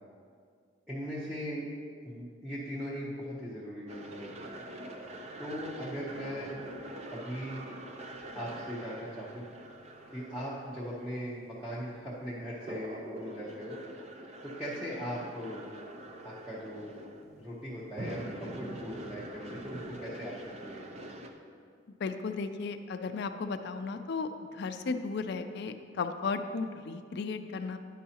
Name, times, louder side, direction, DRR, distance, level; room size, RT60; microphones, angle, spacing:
voice 1, 0.9-1.7 2.0-4.6 5.4-6.6 7.1-7.6 8.3-9.4 10.1-13.8 14.4-15.7 16.2-17.0 17.4-21.2, equal, 5° right, -8 dB, 0.8 m, -39 dB
sound 1, 3.9-21.3, right 1 dB, 35° right, 0.5 m, -45 dB
voice 2, 22.0-27.8, left 4 dB, 60° left, 8 dB, 0.4 m, -35 dB
10.0 x 5.5 x 2.8 m, 2.2 s
head